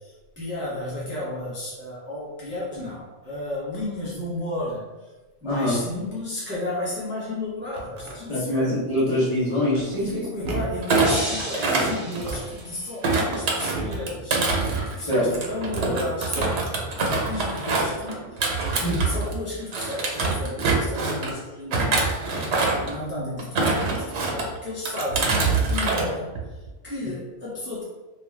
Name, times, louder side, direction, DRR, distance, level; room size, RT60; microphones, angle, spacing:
voice 1, 0.0-5.1 5.4-8.8 10.0-14.4 15.0-22.1 22.5-27.8, left 1 dB, 15° right, -8 dB, 0.5 m, -33 dB
voice 2, 5.4-5.7 8.3-10.2 15.0-15.3 15.8-16.0 18.8-19.0, left 1 dB, 30° left, -9 dB, 0.8 m, -24 dB
sound 1, 7.4-8.2 9.7-10.1 10.4-10.9 12.1-12.6 13.7-14.2 14.9-15.5 16.3-16.7 17.7-18.1 18.6-18.9 20.2-20.5 22.6-22.7 23.6-23.9 24.3-24.7, right 2 dB, 60° right, 0.6 m, -36 dB
Thump thud, 10.8-12.6 13.0-19.4 19.7-21.3 21.7-22.9 23.4-24.5 24.9-26.1 26.4-26.7, right 3 dB, 85° right, 0.9 m, -25 dB
sound 2, 11.0-13.1, equal, 55° left, 1.2 m, -33 dB
2.3 x 2.2 x 3.1 m, 1.2 s
omnidirectional pair, 1.1 m